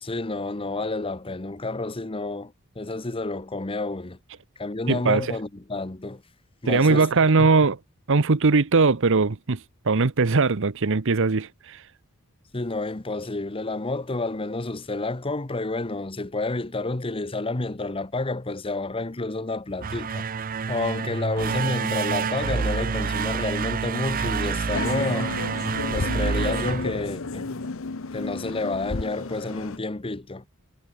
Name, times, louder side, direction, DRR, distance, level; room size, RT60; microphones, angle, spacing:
voice 1, 0.0-4.2 4.6-6.2 6.6-7.1 7.4-7.5 12.5-20.2 20.7-25.3 25.9-27.5 28.1-30.5, left 2 dB, 25° left, 1.0 m, -30 dB
voice 2, 4.9-5.3 6.7-7.8 8.1-9.6 9.9-11.8, right 4 dB, 60° right, 0.9 m, -20 dB
sound 1, 19.7-27.7, right 5 dB, 40° right, 0.6 m, -28 dB
sound 2, 24.7-29.8, left 3 dB, 65° left, 0.9 m, -32 dB
head